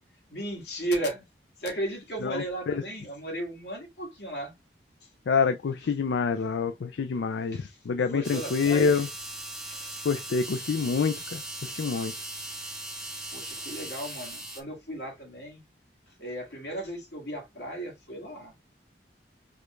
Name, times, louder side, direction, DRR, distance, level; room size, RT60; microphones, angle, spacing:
voice 1, 0.3-1.2 1.6-4.6 5.0-5.1 7.1-7.3 7.5-9.1 9.6-10.1 11.6-11.7 13.3-15.6 16.1-18.6, right 1 dB, 75° left, 2.1 m, -35 dB
voice 2, 2.2-2.7 5.3-9.1 10.0-12.1, left 5 dB, 90° left, 0.4 m, -27 dB
sound 1, 8.2-14.6, right 1 dB, 5° right, 0.7 m, -39 dB
4.9 x 2.4 x 3.1 m
head